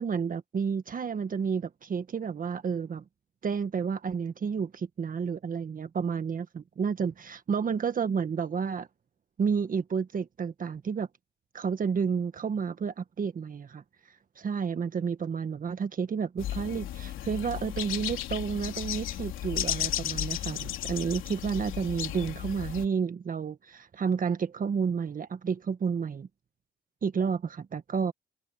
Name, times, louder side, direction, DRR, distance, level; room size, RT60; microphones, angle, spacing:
voice 1, 0.0-3.0 3.4-8.9 9.4-11.1 11.5-13.8 14.4-26.3 27.0-28.1, right 6 dB, 45° right, 1.5 m, -31 dB
sound 1, 16.4-22.9, left 12 dB, 85° left, 3.3 m, -34 dB
cardioid pair, 90°, 20 cm